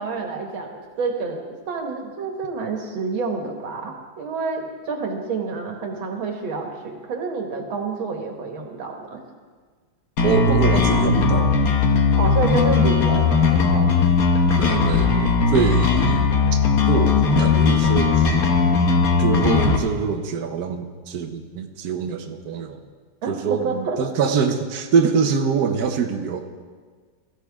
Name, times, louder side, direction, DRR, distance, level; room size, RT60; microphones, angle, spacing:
voice 1, 0.0-9.2 12.1-13.9 23.2-24.0, right 4 dB, 80° right, 2 dB, 2.3 m, -28 dB
sound 1, 10.2-19.8, left 5 dB, 50° left, 1.5 m, -18 dB
voice 2, 10.2-11.5 14.6-16.4 16.9-18.4 19.2-22.8 23.3-26.4, right 6 dB, 60° right, 4 dB, 1.2 m, -24 dB
16.5 x 14.5 x 3.6 m, 1.5 s
omnidirectional pair, 2.2 m